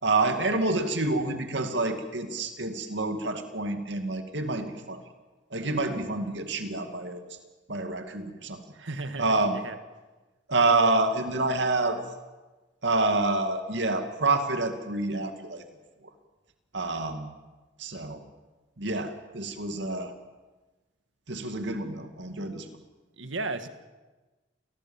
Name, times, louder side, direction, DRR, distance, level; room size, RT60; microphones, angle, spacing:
voice 1, 0.0-5.0 5.5-7.2 7.7-8.6 9.2-9.6 10.5-12.0 12.8-15.6 16.7-17.3 17.8-18.2 18.8-20.1 21.3-22.7, right 2 dB, 70° right, 6 dB, 2.4 m, -27 dB
voice 2, 8.7-9.3 9.6-9.7 23.2-23.7, right 3 dB, 90° right, 9 dB, 1.7 m, -34 dB
27.5 x 18.0 x 7.3 m, 1.2 s
head